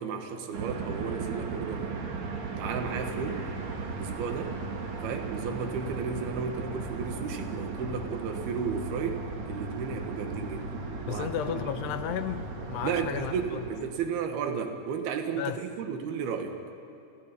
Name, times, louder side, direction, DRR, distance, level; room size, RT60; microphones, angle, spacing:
voice 1, 0.0-2.0 2.6-3.5 4.0-4.6 5.0-10.7 11.1-11.3 11.5-11.7 12.8-16.6, right 6 dB, 65° right, 3.6 m, -33 dB
sound 1, 0.5-13.9, right 4 dB, 45° right, 3.2 m, -36 dB
voice 2, 11.1-13.7 15.3-15.6, left 10 dB, 80° left, 3.0 m, -34 dB
30.0 x 29.0 x 5.4 m
omnidirectional pair, 4.9 m